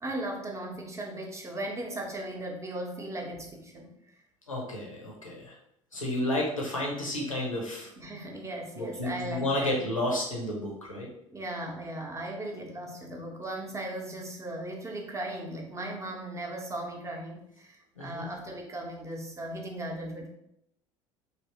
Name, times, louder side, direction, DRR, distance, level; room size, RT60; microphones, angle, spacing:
voice 1, 0.0-3.9 8.0-9.8 11.3-20.3, right 1 dB, 15° right, 1 dB, 0.7 m, -37 dB
voice 2, 4.5-5.5 5.9-7.9 8.8-11.1 18.0-18.3, left 1 dB, 85° left, -2 dB, 0.7 m, -31 dB
3.3 x 2.7 x 2.8 m, 0.79 s
figure-of-eight pair, 65°, 17 cm